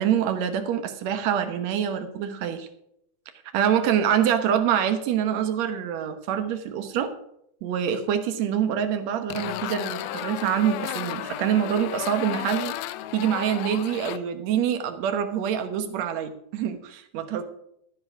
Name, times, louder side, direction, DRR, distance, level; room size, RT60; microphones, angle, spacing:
voice 1, 0.0-2.7 3.5-7.1 7.6-12.8 13.1-17.4, right 9 dB, 65° right, 8 dB, 1.9 m, -25 dB
sound 1, 9.3-14.2, left 13 dB, 80° left, 2.5 m, -33 dB
13.5 x 7.6 x 5.9 m, 0.73 s
omnidirectional pair, 4.4 m